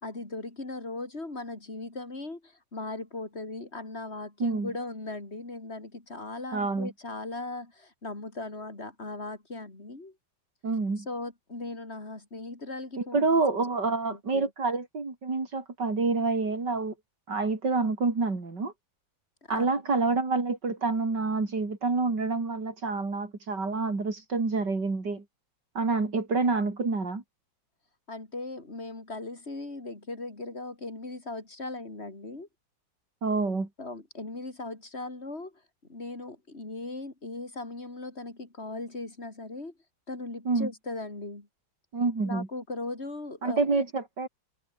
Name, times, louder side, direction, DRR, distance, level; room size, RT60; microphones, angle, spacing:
voice 1, 0.0-10.1 11.0-13.4 14.1-14.5 19.5-19.7 28.1-32.5 33.8-35.6 35.9-39.7 40.1-41.5 42.2-43.7, left 2 dB, 30° left, 4.7 m, -38 dB
voice 2, 6.5-6.9 10.6-11.1 13.0-16.9 17.3-18.7 19.5-25.2 25.7-27.2 33.2-33.7 40.5-40.7 41.9-42.5 43.4-44.3, right 3 dB, 60° right, 4.7 m, -27 dB
omnidirectional pair, 2.1 m